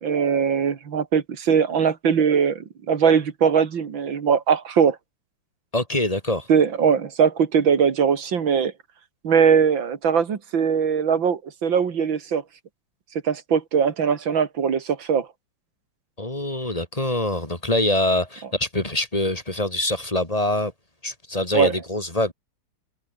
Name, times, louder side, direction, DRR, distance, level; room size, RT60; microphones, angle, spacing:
voice 1, 0.0-5.0 6.5-8.7 9.2-12.4 13.2-15.3 21.5-21.7, right 7 dB, 65° right, 2.6 m, -20 dB
voice 2, 5.7-6.5 16.2-20.7 21.0-22.3, left 1 dB, 15° left, 4.2 m, -24 dB
omnidirectional pair, 2.4 m